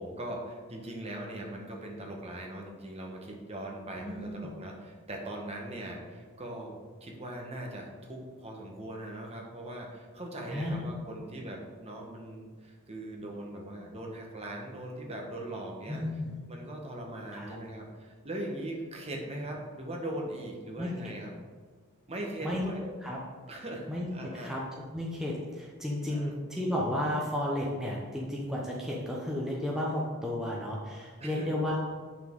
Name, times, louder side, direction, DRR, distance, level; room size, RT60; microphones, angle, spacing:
voice 1, 0.0-16.0 16.5-21.3 22.1-22.8 23.5-24.5 26.1-26.3 31.2-31.5, right 1 dB, 30° right, 0 dB, 1.2 m, -40 dB
voice 2, 4.0-4.3 10.5-10.9 15.9-16.4 17.3-17.5 20.8-21.2 22.4-22.6 23.0-23.2 23.9-24.1 24.4-31.8, left 1 dB, ahead, -4 dB, 0.9 m, -33 dB
8.4 x 6.0 x 3.7 m, 1.5 s
head